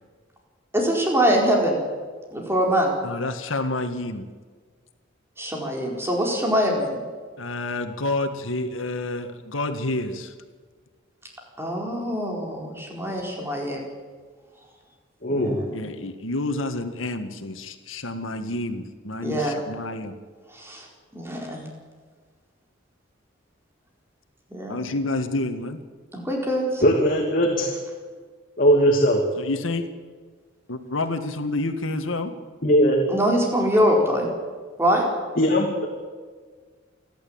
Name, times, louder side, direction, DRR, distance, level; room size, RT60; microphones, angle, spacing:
voice 1, 0.7-1.8 2.3-2.9 5.4-7.0 11.6-13.9 15.3-15.6 19.2-19.6 20.5-20.9 21.1-21.7 24.5-24.8 26.1-26.8 33.1-34.3 34.8-35.1, equal, 15° right, 0 dB, 4.4 m, -23 dB
voice 2, 3.0-4.3 7.4-10.3 15.7-20.2 24.7-25.8 29.4-29.9 30.7-32.3, left 2 dB, 85° left, 7 dB, 1.8 m, -29 dB
voice 3, 15.2-15.6 26.8-27.7 28.6-29.2 32.6-33.0 35.4-35.9, equal, 45° left, 0 dB, 2.6 m, -19 dB
29.0 x 11.5 x 8.8 m, 1.5 s
head